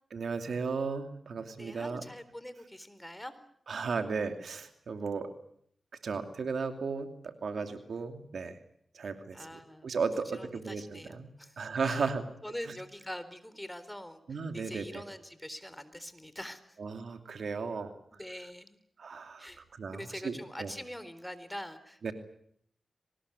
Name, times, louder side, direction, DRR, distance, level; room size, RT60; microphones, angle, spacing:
voice 1, 0.1-2.0 3.7-5.3 6.0-8.6 8.9-11.3 11.6-12.2 14.3-15.0 16.8-17.9 19.0-20.7 22.0-22.1, right 5 dB, 80° right, 7 dB, 2.7 m, -35 dB
voice 2, 1.5-3.4 9.3-9.9 10.3-11.6 11.8-12.1 12.4-16.8 18.1-18.8 19.4-19.6 19.9-22.1, left 1 dB, 10° left, 13 dB, 3.8 m, -44 dB
23.5 x 20.0 x 9.8 m, 0.68 s
cardioid pair, 45°, 0 cm